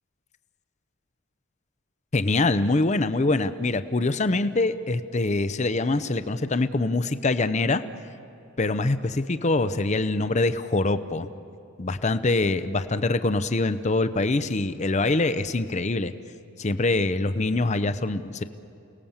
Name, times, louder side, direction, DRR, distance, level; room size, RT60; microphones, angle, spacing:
voice 1, 2.1-7.8 8.6-11.3 11.8-16.1 16.6-18.4, left 2 dB, 35° left, 12 dB, 0.7 m, -24 dB
29.5 x 18.5 x 7.3 m, 2.7 s
head